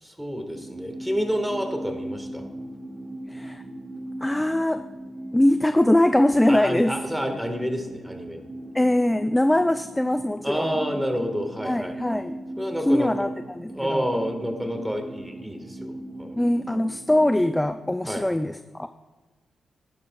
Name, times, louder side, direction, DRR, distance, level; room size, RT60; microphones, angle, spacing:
voice 1, 0.0-2.4 6.5-8.4 10.4-12.0 12.6-13.1 13.7-15.9 16.2-16.4 18.1-18.2, equal, 5° right, 4 dB, 1.6 m, -29 dB
sound 1, 0.5-17.6, right 1 dB, 30° right, 1.4 m, -39 dB
voice 2, 3.3-3.6 4.2-4.9 5.3-7.0 8.7-10.8 11.6-12.4 12.8-14.1 16.4-18.9, left 1 dB, 15° left, 10 dB, 0.3 m, -22 dB
10.5 x 10.0 x 2.4 m, 1.2 s
supercardioid pair, 45°, 0 cm